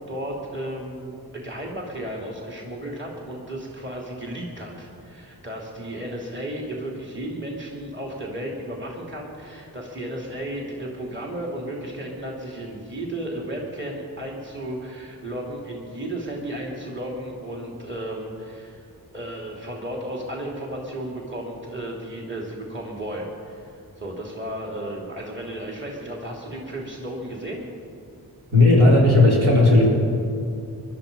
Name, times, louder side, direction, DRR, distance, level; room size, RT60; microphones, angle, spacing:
voice 1, 0.0-18.9 19.1-27.7, right 1 dB, 30° right, -1 dB, 3.0 m, -34 dB
voice 2, 28.5-29.8, left 2 dB, 75° right, -6 dB, 5.1 m, -15 dB
20.5 x 12.0 x 5.4 m, 2.5 s
cardioid pair, 40°, 40 cm